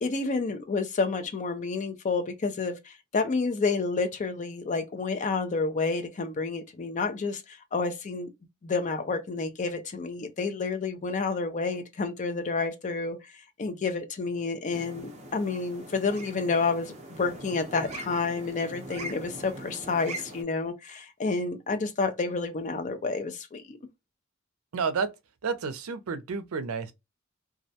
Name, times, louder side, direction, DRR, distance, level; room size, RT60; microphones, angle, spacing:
voice 1, 0.0-8.3 8.6-13.2 13.6-23.8, left 4 dB, 35° left, 0.4 m, -29 dB
sound 1, 14.7-20.4, right 1 dB, 30° right, 0.6 m, -42 dB
voice 2, 24.7-25.1 25.4-26.9, right 5 dB, 85° right, 0.5 m, -30 dB
2.3 x 2.1 x 2.7 m
head